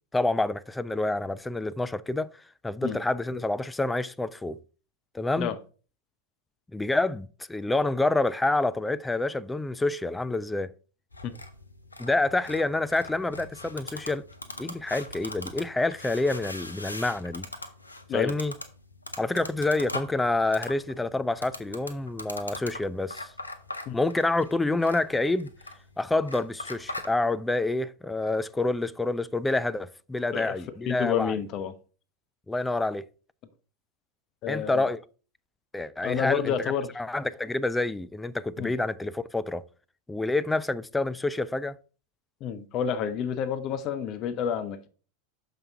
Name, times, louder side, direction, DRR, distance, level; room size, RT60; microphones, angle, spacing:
voice 1, 0.1-2.3 2.6-4.6 5.1-5.5 6.7-10.7 12.0-14.2 14.6-17.5 18.1-18.5 19.2-23.3 23.9-25.5 26.0-31.4 32.5-33.1 34.5-35.0 35.7-39.6 40.1-41.8, left 2 dB, 10° left, 0.4 m, -28 dB
sound 1, 11.1-27.1, left 2 dB, 90° left, 0.8 m, -41 dB
voice 2, 30.9-31.7 34.4-34.9 36.0-36.9 38.6-38.7 42.4-44.9, left 8 dB, 40° left, 0.7 m, -29 dB
6.8 x 5.7 x 3.6 m
figure-of-eight pair, 85°, 0 cm